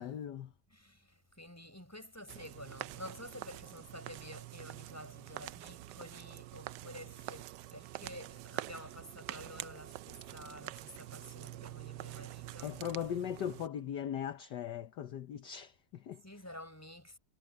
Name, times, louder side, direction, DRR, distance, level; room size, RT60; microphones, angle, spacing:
voice 1, 0.0-0.5 12.6-16.2, left 9 dB, 60° left, 1.4 m, -39 dB
voice 2, 0.7-12.8 16.2-17.2, left 1 dB, 5° left, 5.4 m, -50 dB
sound 1, 2.3-13.7, right 15 dB, 85° right, 0.9 m, -46 dB
omnidirectional pair, 2.4 m